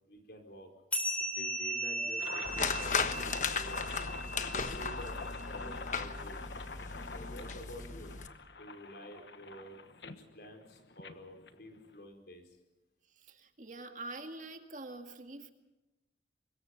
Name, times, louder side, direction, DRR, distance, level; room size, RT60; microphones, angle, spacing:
voice 1, 0.1-0.7 1.4-3.8 4.4-5.2 5.4-6.4 7.1-8.1 8.5-12.6, equal, 65° left, 4 dB, 4.5 m, -50 dB
sound 1, 0.9-5.8, right 1 dB, 10° left, 3.5 m, -38 dB
sound 2, 2.2-12.0, left 4 dB, 80° left, 1.4 m, -44 dB
sound 3, 2.4-8.3, left 5 dB, 45° left, 1.3 m, -36 dB
voice 2, 13.2-15.5, right 2 dB, 45° right, 5 dB, 2.0 m, -45 dB
25.0 x 22.0 x 5.9 m, 1.0 s
head